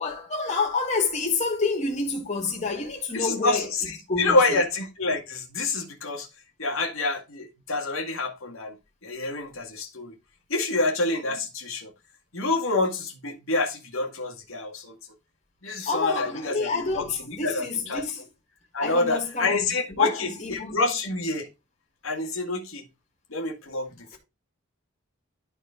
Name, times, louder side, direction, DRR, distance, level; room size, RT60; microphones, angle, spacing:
voice 1, 0.0-3.7 4.1-4.6 15.9-18.2 18.8-20.9 24.1-24.2, left 4 dB, 35° left, 3.1 m, -28 dB
voice 2, 3.1-6.3 6.6-8.7 9.0-10.1 10.5-11.9 12.3-14.9 15.6-18.0 18.7-21.5 22.0-22.8 23.3-23.9, left 2 dB, 85° left, 2.0 m, -27 dB
12.5 x 4.5 x 3.7 m
head